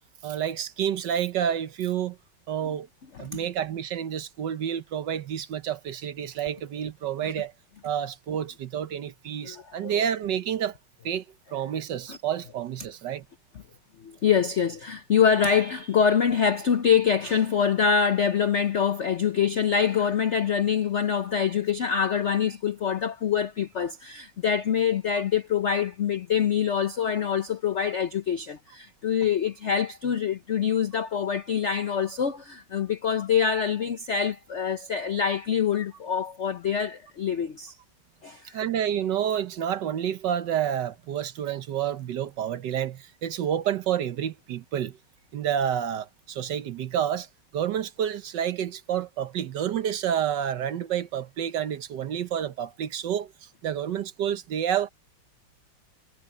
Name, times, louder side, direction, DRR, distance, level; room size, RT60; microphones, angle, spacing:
voice 1, 0.2-2.2 2.5-2.9 3.2-7.5 7.8-10.8 11.0-11.2 11.5-13.2 38.5-45.0 45.3-47.3 47.5-53.3 53.6-54.9, right 9 dB, 65° right, 1.4 m, -29 dB
voice 2, 9.4-10.0 12.1-12.2 14.0-37.7 38.2-38.6, left 7 dB, 70° left, 0.6 m, -25 dB
omnidirectional pair, 2.3 m